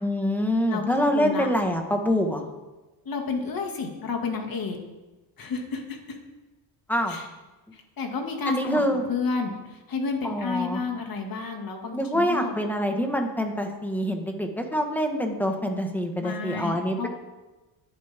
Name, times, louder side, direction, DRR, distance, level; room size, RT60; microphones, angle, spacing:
voice 1, 0.0-2.4 6.9-7.2 8.5-9.0 10.2-10.8 11.9-17.1, equal, 5° left, 3 dB, 1.8 m, -25 dB
voice 2, 0.7-1.5 3.1-4.8 5.4-6.2 7.1-7.3 7.7-12.5 16.2-17.1, left 4 dB, 45° left, 2 dB, 2.5 m, -31 dB
18.5 x 10.5 x 3.8 m, 1.1 s
cardioid pair, 115°, 46 cm